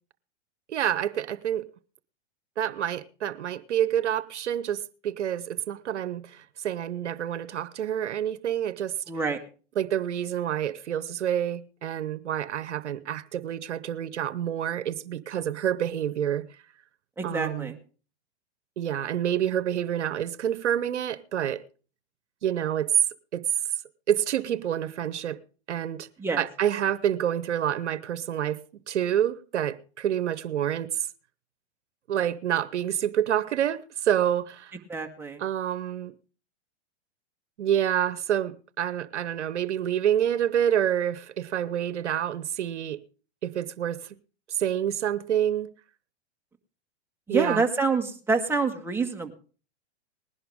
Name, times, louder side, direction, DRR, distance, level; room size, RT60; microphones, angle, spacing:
voice 1, 0.7-1.7 2.6-8.9 9.8-16.5 17.2-17.7 18.8-21.6 22.4-23.0 23.3-23.4 24.1-25.4 25.7-26.1 26.4-30.9 32.1-34.7 35.4-36.1 37.6-43.0 43.4-44.0 44.6-45.7 47.3-47.7, right 10 dB, 85° right, 0.9 m, -28 dB
voice 2, 9.1-9.4 17.2-17.7 26.2-26.4 34.9-35.4 47.3-49.3, right 4 dB, 5° right, 1.8 m, -27 dB
20.0 x 11.0 x 3.6 m
hypercardioid pair, 115°, 34 cm